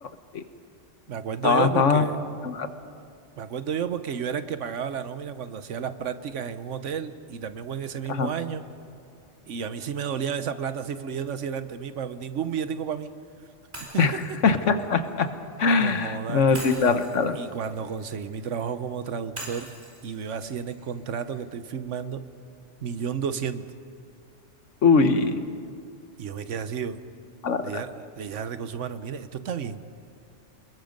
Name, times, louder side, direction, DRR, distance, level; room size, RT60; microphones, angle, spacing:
voice 1, 0.0-0.4 1.4-2.0 2.4-2.7 8.1-8.3 14.0-15.3 15.6-17.4 24.8-25.4 27.4-27.8, left 5 dB, 85° left, 9 dB, 1.5 m, -22 dB
voice 2, 1.1-2.2 3.4-8.6 9.5-13.1 13.8-14.0 15.8-16.6 17.3-19.7 20.0-22.2 22.8-23.6 26.2-27.0 27.6-29.8, right 7 dB, 80° right, 11 dB, 1.2 m, -32 dB
Shatter, 13.7-15.8 16.5-18.6 19.4-21.4, right 1 dB, 60° right, 4.9 m, -43 dB
28.5 x 21.0 x 5.3 m, 2.5 s
omnidirectional pair, 1.2 m